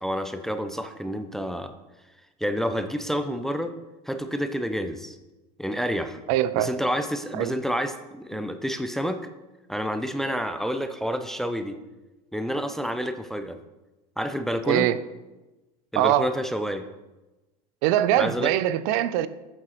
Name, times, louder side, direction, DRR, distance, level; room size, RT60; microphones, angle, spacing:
voice 1, 0.0-1.7 2.4-3.7 4.1-5.2 5.6-6.2 6.5-9.2 9.7-11.8 12.3-13.6 14.2-14.9 15.9-16.8 18.2-18.5, equal, ahead, 8 dB, 0.4 m, -29 dB
voice 2, 6.3-6.7 7.3-7.5 14.7-15.0 16.0-16.3 17.8-19.3, right 12 dB, 65° right, 15 dB, 0.5 m, -22 dB
7.9 x 7.6 x 2.9 m, 1.1 s
supercardioid pair, 110°, 20 cm